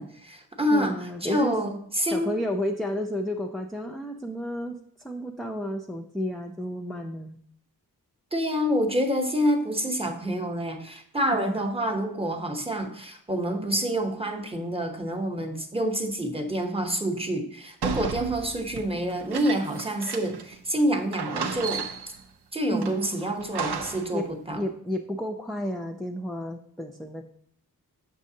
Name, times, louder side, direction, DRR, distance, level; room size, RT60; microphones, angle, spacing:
voice 1, 0.0-2.3 8.3-21.9 22.5-24.6, equal, 15° right, 4 dB, 0.8 m, -27 dB
voice 2, 0.7-1.5 2.1-7.4 11.3-11.6 22.7-23.1 24.1-27.2, equal, ahead, 1 dB, 0.4 m, -32 dB
sound 1, 17.8-20.6 20.8-20.9 21.1-22.2 22.8-24.2, right 5 dB, 90° right, 0.7 m, -34 dB
6.5 x 6.3 x 2.7 m, 0.66 s
wide cardioid pair, 95°, 38 cm